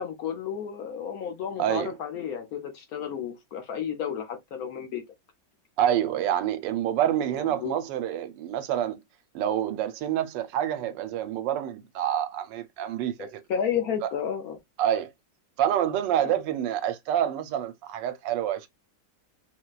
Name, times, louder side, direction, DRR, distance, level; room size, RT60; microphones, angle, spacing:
voice 1, 0.0-5.0 7.4-7.8 13.2-14.6 16.2-16.3, left 8 dB, 65° left, 1.1 m, -32 dB
voice 2, 1.6-1.9 5.8-9.0 9.3-13.4 14.8-15.1 15.6-18.7, right 10 dB, 85° right, 1.3 m, -27 dB
4.1 x 2.2 x 2.2 m
omnidirectional pair, 1.9 m